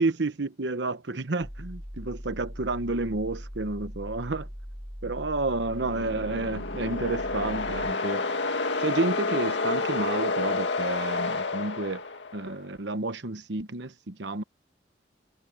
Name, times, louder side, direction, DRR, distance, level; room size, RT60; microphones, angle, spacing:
voice 1, 0.0-4.5 5.0-8.2 8.8-12.0 12.3-14.4, right 2 dB, 80° right, 1.1 m, -30 dB
sound 1, 1.4-7.9, equal, 10° right, 3.2 m, -40 dB
sound 2, 5.5-12.6, left 3 dB, 85° left, 2.1 m, -30 dB
head